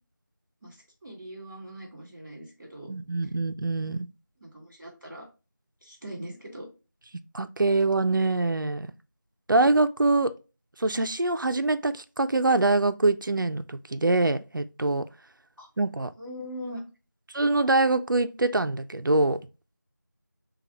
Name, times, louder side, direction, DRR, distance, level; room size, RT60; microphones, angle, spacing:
voice 1, 1.0-2.9 3.8-3.9 4.4-5.3 5.8-6.7 15.6-15.7 16.2-16.8, equal, 5° right, 1.2 m, -41 dB
voice 2, 2.9-4.1 7.3-8.9 9.5-10.3 10.8-15.0 15.8-16.1 17.3-19.4, right 2 dB, 90° right, 0.5 m, -24 dB
6.3 x 2.3 x 2.8 m
figure-of-eight pair, 180°, 11 cm